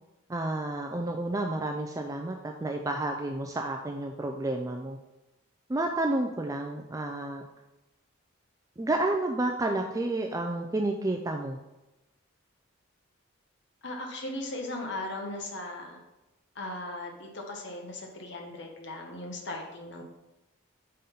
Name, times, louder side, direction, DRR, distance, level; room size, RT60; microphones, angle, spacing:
voice 1, 0.3-5.0 5.7-7.4 8.8-11.6, right 2 dB, 15° right, 3 dB, 0.3 m, -30 dB
voice 2, 13.8-16.0 16.5-20.0, left 2 dB, 55° left, 1 dB, 1.0 m, -38 dB
5.4 x 3.8 x 5.6 m, 1.0 s
head